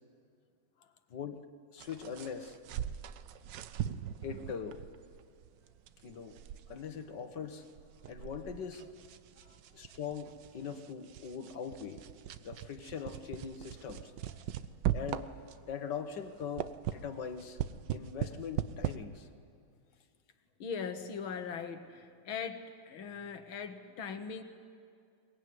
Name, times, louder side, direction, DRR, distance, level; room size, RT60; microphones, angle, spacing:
voice 1, 1.1-1.5 1.7-2.6 4.2-4.8 6.0-6.3 6.7-7.7 8.1-8.9 9.7-12.0 12.4-14.1 14.9-15.3 15.7-17.6 17.9-19.3, left 7 dB, 60° left, 8 dB, 1.8 m, -41 dB
sound 1, 1.8-15.8 16.2-18.9, right 11 dB, 65° right, 1.3 m, -40 dB
voice 2, 20.6-24.4, left 6 dB, 75° left, 8 dB, 2.1 m, -41 dB
22.5 x 21.5 x 9.4 m, 2.3 s
omnidirectional pair, 2.3 m